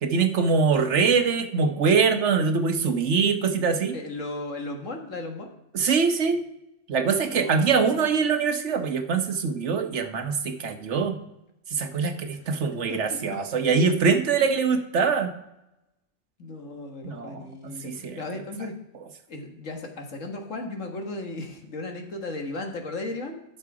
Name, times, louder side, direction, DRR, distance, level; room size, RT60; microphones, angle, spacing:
voice 1, 0.0-4.0 5.7-6.4 6.9-11.2 11.7-15.3 17.0-18.2, right 5 dB, 70° right, 7 dB, 1.2 m, -23 dB
voice 2, 3.9-5.5 7.3-8.1 12.9-13.0 14.4-14.5 16.4-18.7 19.3-23.4, left 2 dB, 80° left, 3 dB, 1.8 m, -35 dB
12.0 x 6.6 x 4.8 m, 0.89 s
omnidirectional pair, 1.3 m